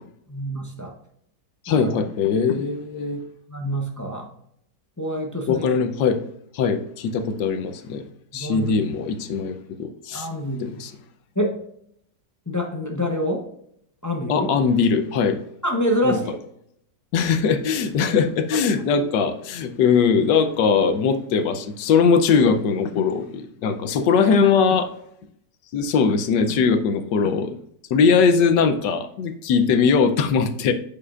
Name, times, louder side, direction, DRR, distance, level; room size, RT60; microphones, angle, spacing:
voice 1, 0.3-0.9 1.7-1.9 3.5-4.3 5.0-5.6 8.3-8.7 10.1-10.7 11.4-11.6 12.5-13.5 14.0-14.5 15.6-16.4, equal, 25° left, 0.4 m, -26 dB
voice 2, 1.6-3.2 5.5-6.2 6.5-8.0 8.3-10.3 10.6-10.9 14.3-15.4 16.0-16.2 17.1-24.9 25.7-27.6 27.9-30.7, left 5 dB, 80° left, 1.4 m, -20 dB
8.6 x 6.8 x 2.4 m
omnidirectional pair, 1.9 m